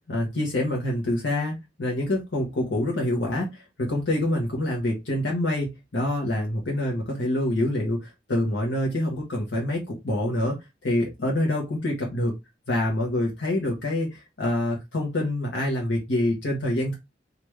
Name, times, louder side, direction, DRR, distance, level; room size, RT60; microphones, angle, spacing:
voice 1, 0.1-10.6 10.8-12.3 12.7-16.9, left 1 dB, 90° left, -1 dB, 0.9 m, -26 dB
3.4 x 2.5 x 3.1 m, 0.23 s
head